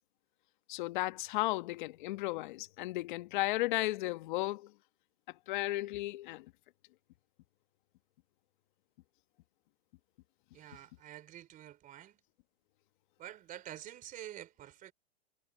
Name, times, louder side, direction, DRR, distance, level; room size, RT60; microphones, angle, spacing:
voice 1, 0.7-4.7 5.5-6.5, left 18 dB, 50° left, 1.5 m, -34 dB
voice 2, 10.5-12.2 13.2-14.9, right 12 dB, 25° right, 4.2 m, -48 dB
hypercardioid pair, 135°, 31 cm